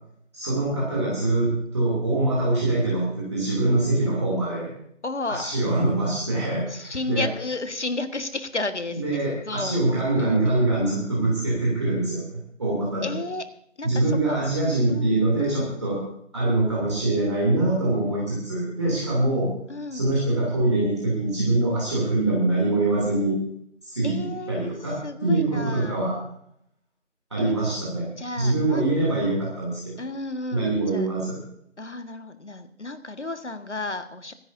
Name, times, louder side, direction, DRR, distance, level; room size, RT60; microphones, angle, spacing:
voice 1, 0.3-4.7 5.3-7.3 8.9-13.2 13.8-16.0 16.3-19.5 19.9-23.4 23.8-26.2 27.3-29.9 30.5-31.4, right 2 dB, 20° right, -6 dB, 3.0 m, -24 dB
voice 2, 5.0-5.4 6.7-10.7 13.0-13.5 13.8-14.6 14.9-15.7 19.7-20.1 24.0-26.0 27.5-27.6 28.2-28.8 30.0-31.1 31.8-34.3, left 2 dB, 65° left, 9 dB, 1.8 m, -33 dB
25.5 x 11.0 x 2.7 m, 0.71 s
figure-of-eight pair, 170°, 37 cm